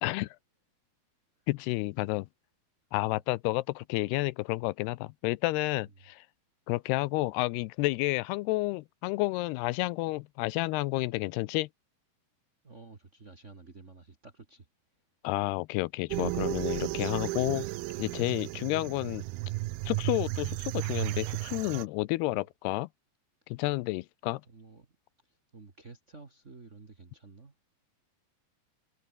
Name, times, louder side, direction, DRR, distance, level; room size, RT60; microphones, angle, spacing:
voice 1, 0.0-0.4 1.5-2.3 2.9-6.3 6.7-11.7 15.2-17.7 18.0-19.3 19.9-22.9 23.5-24.4, left 20 dB, 80° left, 2.6 m, -30 dB
voice 2, 12.6-14.7 16.6-16.9 22.2-22.4 24.4-25.0 25.2-27.5, right 4 dB, 50° right, 0.8 m, -52 dB
sound 1, 16.1-21.9, right 19 dB, 80° right, 2.5 m, -34 dB
omnidirectional pair, 4.7 m